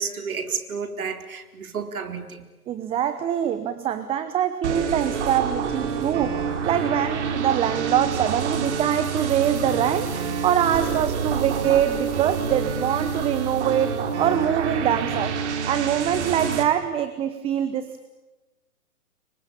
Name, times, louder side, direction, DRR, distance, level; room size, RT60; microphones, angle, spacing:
voice 1, 0.0-2.4, right 5 dB, 70° right, 8 dB, 4.2 m, -31 dB
voice 2, 2.7-13.9 14.2-15.4 15.7-18.0, right 10 dB, 15° right, 12 dB, 1.0 m, -24 dB
sound 1, 4.6-16.6, right 6 dB, 50° right, 4.0 m, -27 dB
30.0 x 24.0 x 7.1 m, 1.1 s
hypercardioid pair, 140°, 44 cm